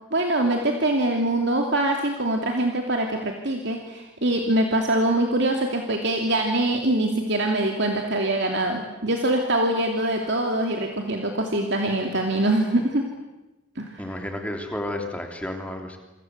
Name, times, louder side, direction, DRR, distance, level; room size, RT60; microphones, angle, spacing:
voice 1, 0.0-13.1 13.8-14.1, right 1 dB, 55° right, 2 dB, 2.8 m, -24 dB
voice 2, 14.0-16.0, left 1 dB, 5° left, 3 dB, 3.3 m, -31 dB
28.0 x 25.0 x 8.1 m, 1.0 s
head